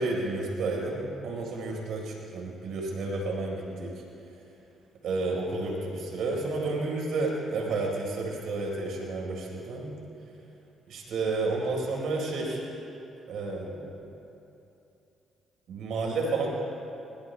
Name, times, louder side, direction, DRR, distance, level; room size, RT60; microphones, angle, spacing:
voice 1, 0.0-3.9 5.0-9.9 10.9-12.6 13.3-14.0 15.7-16.5, right 3 dB, 75° right, 0 dB, 4.5 m, -31 dB
22.5 x 22.0 x 2.3 m, 2.8 s
supercardioid pair, 70°, 0 cm